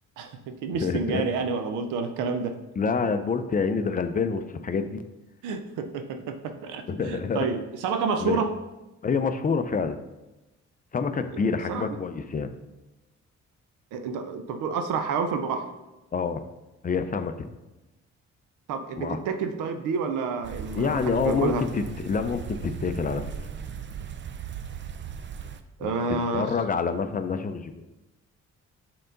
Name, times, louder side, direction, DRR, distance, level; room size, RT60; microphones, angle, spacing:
voice 1, 0.2-2.6 5.4-8.5 11.7-11.9 13.9-15.6 18.7-21.7 25.8-26.5, right 5 dB, 90° right, 7 dB, 0.6 m, -29 dB
voice 2, 0.8-1.2 2.8-5.0 6.9-7.5 8.2-8.4 9.0-10.0 10.9-12.5 16.1-16.4 16.8-17.5 19.0-19.2 20.7-23.2 25.8-25.9 26.3-27.8, left 5 dB, 30° left, 9 dB, 0.5 m, -27 dB
sound 1, 20.4-25.6, right 8 dB, 40° right, 0.5 m, -37 dB
6.7 x 3.8 x 3.8 m, 1.0 s
cardioid pair, 90°, 30 cm